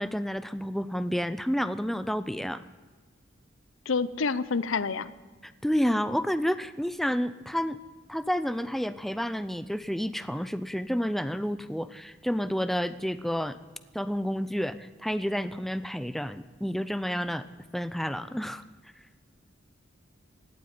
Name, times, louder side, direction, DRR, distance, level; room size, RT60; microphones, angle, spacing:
voice 1, 0.0-2.6 5.4-7.8 8.1-13.6 13.9-17.4 17.7-18.6, equal, ahead, 13 dB, 0.4 m, -30 dB
voice 2, 3.9-5.1, left 4 dB, 85° left, 17 dB, 0.7 m, -28 dB
17.5 x 8.5 x 9.5 m, 1.4 s
head